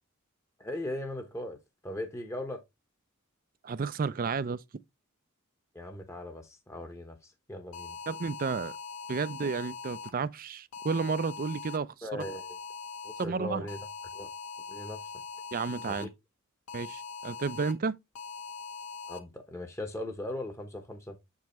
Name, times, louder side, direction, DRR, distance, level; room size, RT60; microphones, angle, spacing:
voice 1, 0.6-1.6 1.8-2.6 5.7-8.0 12.0-12.4 13.0-13.8 14.1-14.3 14.7-15.1 15.9-16.1 19.1-21.2, left 1 dB, 15° left, 0.9 m, -39 dB
voice 2, 3.6-4.6 8.1-8.8 9.1-12.2 13.2-13.7 15.5-16.1 16.7-18.0, right 5 dB, 40° right, 0.4 m, -32 dB
sound 1, 7.7-10.1 10.7-11.8 12.2-13.3 13.7-16.0 16.7-17.7 18.2-19.2, left 5 dB, 85° left, 1.4 m, -42 dB
7.4 x 5.4 x 3.0 m
head